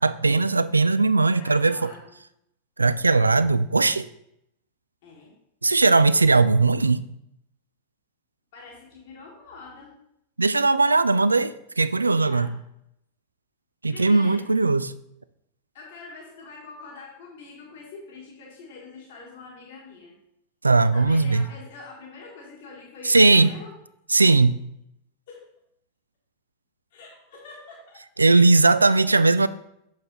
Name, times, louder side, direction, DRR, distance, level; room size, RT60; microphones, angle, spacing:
voice 1, 0.0-1.9 2.8-4.0 5.6-7.1 10.4-12.5 13.8-14.9 20.6-21.4 23.0-23.5 24.1-24.6 28.2-29.5, right 3 dB, 80° right, 15 dB, 0.3 m, -19 dB
voice 2, 1.3-2.1 5.0-5.3 8.5-10.0 12.2-12.6 13.9-14.5 15.7-20.1 20.8-23.7 25.3-25.5 26.9-28.0, left 4 dB, 55° left, -2 dB, 1.5 m, -44 dB
6.8 x 5.4 x 3.9 m, 0.78 s
figure-of-eight pair, 90°, 0 cm